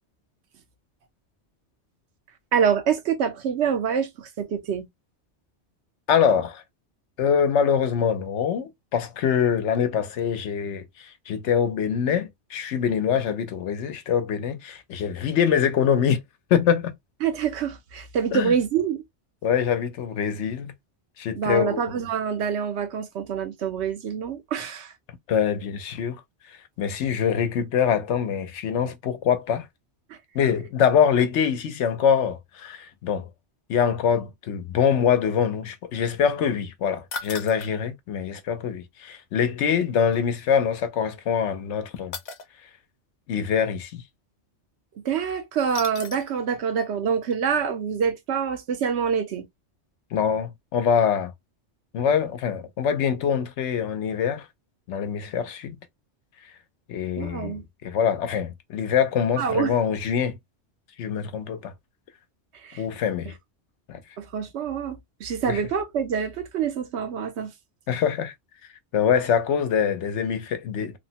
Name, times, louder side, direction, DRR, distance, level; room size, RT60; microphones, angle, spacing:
voice 1, 2.5-4.9 17.2-19.0 21.4-24.9 30.1-30.2 45.0-49.5 57.2-57.6 59.4-59.7 62.6-62.8 64.2-67.5, right 7 dB, 75° right, 0.9 m, -26 dB
voice 2, 6.1-6.6 7.2-16.2 16.5-16.9 18.3-18.5 19.4-20.7 21.2-22.0 25.3-26.2 26.8-29.7 30.3-33.3 33.7-42.1 43.3-44.0 50.1-51.3 51.9-54.5 54.9-55.8 56.9-60.4 61.0-61.7 62.8-63.3 63.9-64.0 65.5-65.6 67.9-68.3 68.9-71.0, left 7 dB, 80° left, 0.9 m, -24 dB
sound 1, 37.1-37.7 40.1-40.2 42.1-42.5 45.7-46.4 46.8-46.9 47.3-47.4, left 5 dB, 50° left, 0.6 m, -36 dB
3.1 x 2.1 x 2.7 m
omnidirectional pair, 1.2 m